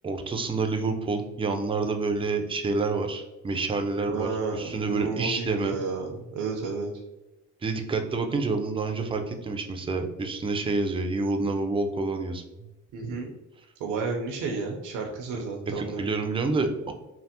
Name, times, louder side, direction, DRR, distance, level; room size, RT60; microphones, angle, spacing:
voice 1, 0.0-5.8 7.6-12.4 15.8-16.9, right 3 dB, 20° right, 5 dB, 0.4 m, -28 dB
voice 2, 4.1-6.9 12.9-13.3 13.8-16.1, right 4 dB, 80° right, 0 dB, 0.6 m, -31 dB
3.3 x 2.0 x 2.8 m, 1.0 s
cardioid pair, 90°, 30 cm